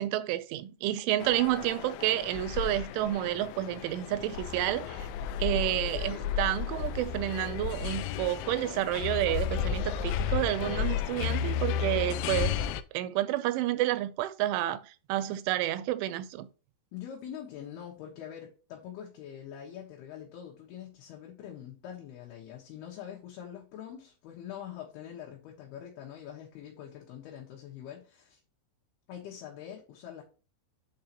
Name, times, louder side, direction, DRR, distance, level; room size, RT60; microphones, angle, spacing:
voice 1, 0.0-5.1 5.4-12.6 12.9-16.5, right 14 dB, 85° right, 3.1 m, -30 dB
sound 1, 1.2-12.8, left 8 dB, 85° left, 3.0 m, -33 dB
voice 2, 16.9-28.4 29.1-30.2, left 9 dB, 65° left, 2.9 m, -44 dB
8.9 x 5.5 x 2.9 m
omnidirectional pair, 5.6 m